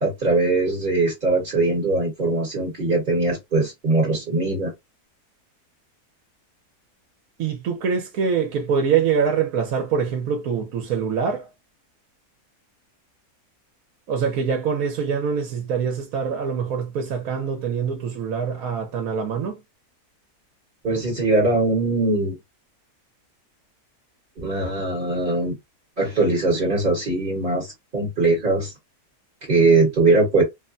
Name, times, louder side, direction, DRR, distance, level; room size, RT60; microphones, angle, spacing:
voice 1, 0.0-4.7 20.8-22.4 24.4-25.6 26.0-28.7 29.5-30.4, right 3 dB, 35° right, 1.2 m, -21 dB
voice 2, 7.4-11.4 14.1-19.6, right 6 dB, 70° right, 1.1 m, -24 dB
3.2 x 2.1 x 2.5 m
omnidirectional pair, 1.6 m